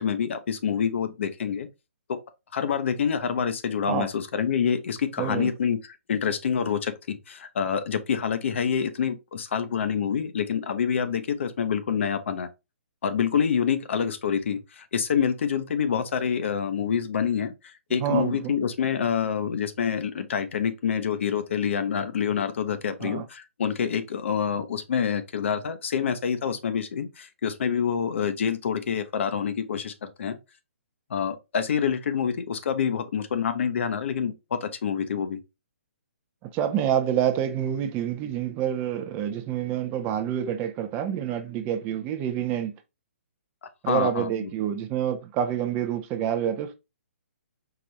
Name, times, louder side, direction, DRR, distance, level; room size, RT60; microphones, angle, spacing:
voice 1, 0.0-1.7 2.1-2.2 2.5-12.5 13.0-30.4 31.1-35.4 43.9-44.5, left 7 dB, 60° left, 0.7 m, -27 dB
voice 2, 5.2-5.5 18.0-18.5 23.0-23.2 36.4-42.7 43.8-46.7, right 10 dB, 25° right, 0.4 m, -27 dB
4.8 x 2.5 x 3.0 m
hypercardioid pair, 140°, 7 cm